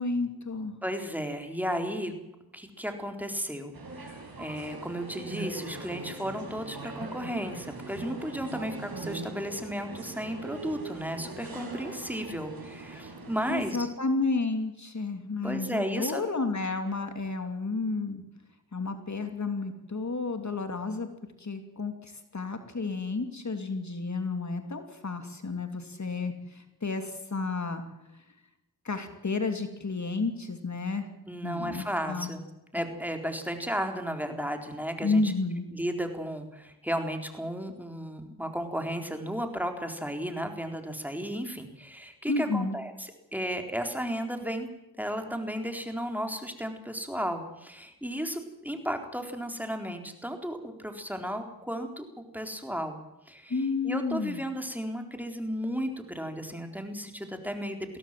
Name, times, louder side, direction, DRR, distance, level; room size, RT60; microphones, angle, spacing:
voice 1, 0.0-0.7 13.5-18.2 18.7-21.1 21.4-27.8 28.8-31.1 31.4-32.3 35.0-35.7 42.3-42.8 53.5-54.4, left 3 dB, 50° left, 7 dB, 2.9 m, -31 dB
voice 2, 0.8-2.1 2.5-13.9 15.4-16.2 31.3-32.4 32.7-35.3 35.7-44.7 45.0-53.0 53.3-58.0, equal, 5° right, 5 dB, 4.0 m, -34 dB
sound 1, 3.7-13.7, right 3 dB, 70° right, 6.1 m, -41 dB
22.0 x 17.0 x 7.7 m, 0.93 s
cardioid pair, 50°, 38 cm